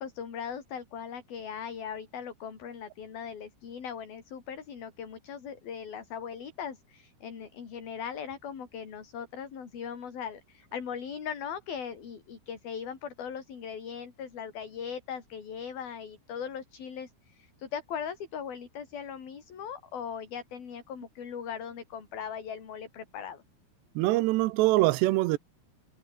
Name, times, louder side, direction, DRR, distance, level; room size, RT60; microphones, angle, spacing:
voice 1, 0.0-23.4, left 7 dB, 60° left, 5.7 m, -39 dB
voice 2, 24.0-25.4, right 18 dB, 90° right, 3.0 m, -24 dB
omnidirectional pair, 4.8 m